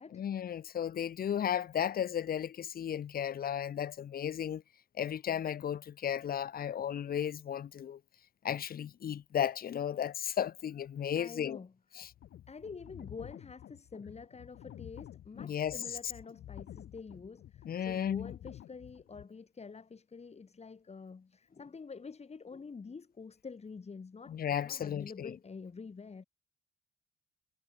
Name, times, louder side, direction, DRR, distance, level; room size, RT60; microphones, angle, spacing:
voice 1, 0.1-4.6 5.0-8.0 8.4-11.6 12.0-12.1 15.4-15.8 17.7-18.3 24.3-25.3, left 9 dB, 50° left, 0.8 m, -34 dB
voice 2, 11.2-12.1 12.5-24.4 24.6-26.2, left 5 dB, 30° left, 3.6 m, -47 dB
sound 1, 12.0-19.2, left 11 dB, 75° left, 4.1 m, -51 dB
cardioid pair, 90°, 20 cm